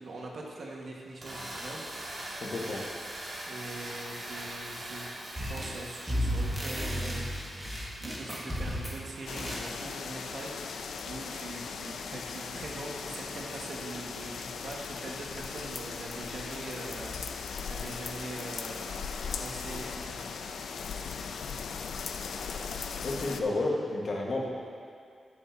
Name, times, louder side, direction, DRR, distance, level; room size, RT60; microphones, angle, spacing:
voice 1, 0.0-1.9 3.5-5.1 5.3-7.3 7.6-7.7 8.0-19.1 19.4-20.2, right 2 dB, 65° right, -2 dB, 1.6 m, -42 dB
sound 1, 1.1-9.6, right 1 dB, 35° right, 1.9 m, -42 dB
voice 2, 2.4-2.9 23.0-24.5, left 2 dB, 50° left, -2 dB, 1.5 m, -31 dB
sound 2, 5.4-5.8 6.1-9.0 9.4-9.7, equal, 5° right, 1.7 m, -33 dB
sound 3, 9.3-23.4, left 5 dB, 85° left, 0.5 m, -38 dB
16.0 x 6.7 x 2.8 m, 2.4 s
wide cardioid pair, 120°, 0 cm